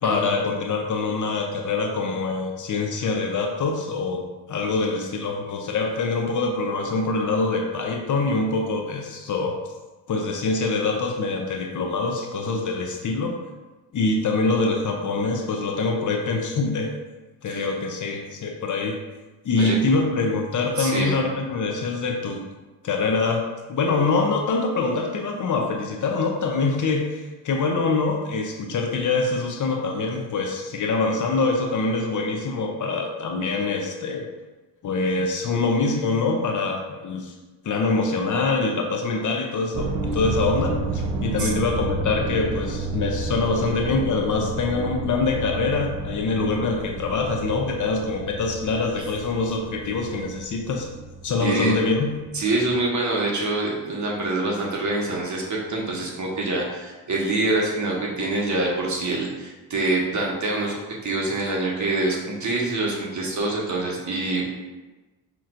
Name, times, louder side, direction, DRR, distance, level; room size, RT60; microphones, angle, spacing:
voice 1, 0.0-4.2 4.5-9.5 10.1-13.3 13.9-16.9 17.4-19.0 19.4-22.4 22.8-23.4 23.7-34.3 34.8-37.3 37.6-39.9 40.1-50.9 51.2-52.1, left 3 dB, 45° left, 2 dB, 0.7 m, -24 dB
voice 2, 20.8-21.1 41.4-41.5 51.4-51.8 52.3-64.5, right 2 dB, 40° right, -3 dB, 1.3 m, -25 dB
sound 1, 39.7-51.9 52.3-52.8, right 2 dB, 70° right, 0.8 m, -31 dB
5.6 x 3.0 x 2.5 m, 1.2 s
supercardioid pair, 70°, 44 cm